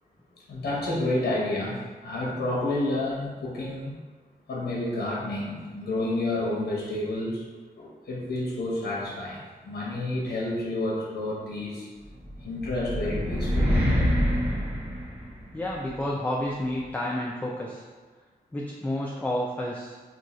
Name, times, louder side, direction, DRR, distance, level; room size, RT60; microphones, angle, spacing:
voice 1, 0.5-3.9 4.5-7.4 7.8-11.9 12.4-13.8, left 2 dB, 85° left, -4 dB, 0.7 m, -30 dB
sound 1, 12.2-15.7, equal, 10° right, 0.8 m, -26 dB
voice 2, 15.5-17.8 18.5-19.9, left 1 dB, 10° left, -3 dB, 0.3 m, -30 dB
2.5 x 2.3 x 4.1 m, 1.4 s
wide cardioid pair, 120°, 17 cm